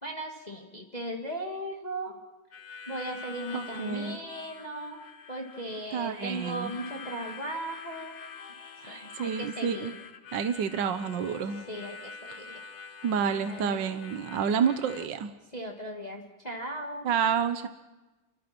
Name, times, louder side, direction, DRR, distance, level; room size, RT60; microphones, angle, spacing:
voice 1, 0.0-2.2 2.9-5.0 5.3-8.1 8.9-9.9 11.7-12.6 13.4-13.8 15.5-17.1, right 1 dB, 20° left, 1 dB, 2.3 m, -37 dB
Harmonica, 2.5-15.1, left 6 dB, 55° left, 1.4 m, -45 dB
voice 2, 3.5-4.2 5.9-6.7 8.8-9.9 10.3-11.6 13.0-15.3 17.0-17.7, right 7 dB, 65° right, 10 dB, 1.6 m, -29 dB
29.5 x 24.0 x 6.1 m, 1.1 s
omnidirectional pair, 2.3 m